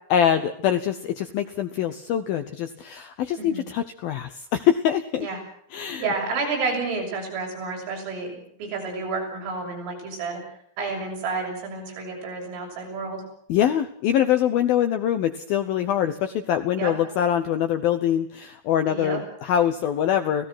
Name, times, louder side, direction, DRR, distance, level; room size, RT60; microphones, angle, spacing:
voice 1, 0.1-5.3 5.7-6.1 13.5-20.5, left 10 dB, 80° left, 9 dB, 2.1 m, -24 dB
voice 2, 5.8-8.3 8.6-10.4 10.8-13.2 16.8-16.9 18.9-19.2, right 4 dB, 80° right, 2 dB, 9.3 m, -30 dB
29.5 x 17.5 x 6.2 m, 0.63 s
omnidirectional pair, 5.8 m